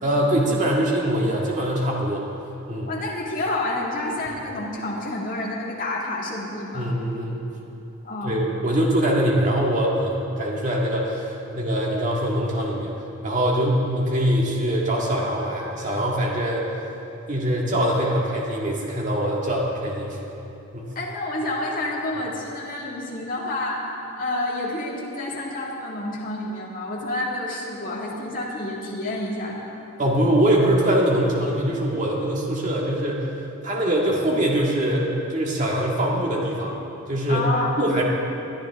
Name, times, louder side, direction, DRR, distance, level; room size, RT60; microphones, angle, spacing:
voice 1, 0.0-2.2 2.7-2.9 6.7-7.4 8.2-12.9 13.2-16.7 17.3-20.2 20.7-20.9 30.0-33.3 33.6-36.8 37.1-37.5 37.8-38.0, right 1 dB, 35° right, -3 dB, 1.9 m, -23 dB
voice 2, 2.9-7.0 8.0-8.4 21.0-23.8 24.1-29.7 37.3-37.7, left 2 dB, 40° left, -4 dB, 2.1 m, -29 dB
20.0 x 11.5 x 3.6 m, 2.9 s
head